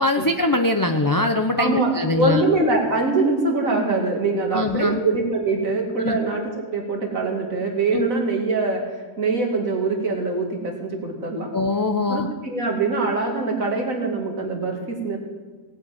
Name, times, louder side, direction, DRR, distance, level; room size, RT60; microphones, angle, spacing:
voice 1, 0.0-2.4 4.5-5.0 6.0-6.2 7.9-8.1 11.5-12.3, left 2 dB, 20° left, 4 dB, 0.6 m, -22 dB
voice 2, 1.6-11.5 12.1-15.2, right 3 dB, 70° right, 1 dB, 3.0 m, -23 dB
18.5 x 8.5 x 8.8 m, 1.4 s
omnidirectional pair, 1.5 m